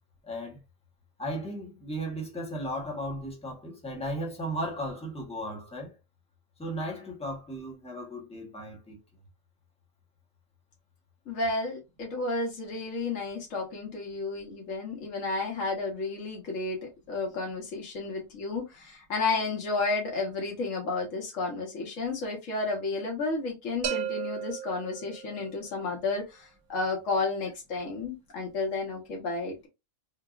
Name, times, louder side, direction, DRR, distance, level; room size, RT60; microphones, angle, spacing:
voice 1, 0.2-0.6 1.2-5.9 6.6-9.0, equal, 5° left, 0.9 m, -35 dB
voice 2, 11.3-16.8 17.1-29.7, left 3 dB, 70° left, 1.6 m, -32 dB
sound 1, 23.8-25.7, right 9 dB, 80° right, 1.0 m, -35 dB
3.5 x 2.5 x 2.4 m
omnidirectional pair, 1.4 m